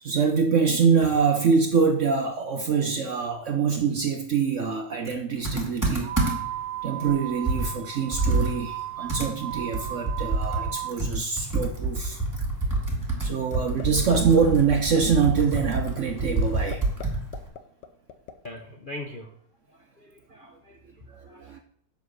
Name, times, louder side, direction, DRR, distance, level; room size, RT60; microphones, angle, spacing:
voice 1, 0.0-6.1 6.8-12.2 13.2-16.9 21.1-21.6, right 6 dB, 60° right, 5 dB, 0.9 m, -24 dB
Computer keyboard, 5.4-6.6 7.1-7.2 7.5-10.7 11.0-17.5, right 2 dB, 10° right, 2.0 m, -27 dB
sound 1, 6.0-11.0, right 13 dB, 80° right, 1.2 m, -35 dB
sound 2, 13.5-13.8 14.1-14.4 14.7-15.0 15.4-15.6 16.0-16.1 16.4-17.1 17.3-18.3, left 8 dB, 75° left, 1.4 m, -37 dB
voice 2, 18.4-19.3 20.0-20.8 21.3-21.6, left 1 dB, 45° left, 1 dB, 0.7 m, -41 dB
7.2 x 5.3 x 6.3 m, 0.64 s
omnidirectional pair, 1.9 m